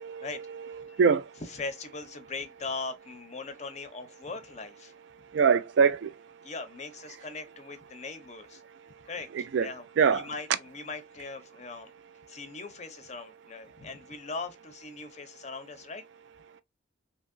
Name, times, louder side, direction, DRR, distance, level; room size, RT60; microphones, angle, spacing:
voice 1, 0.0-1.4 5.1-6.5 8.7-10.3 12.3-12.4 13.8-13.9 16.5-16.6, right 6 dB, 65° right, 0.3 m, -27 dB
voice 2, 1.5-4.9 6.4-8.6 9.0-9.3 9.6-9.8 10.1-11.9 12.3-16.0, left 4 dB, 35° left, 0.5 m, -40 dB
2.8 x 2.7 x 2.5 m
head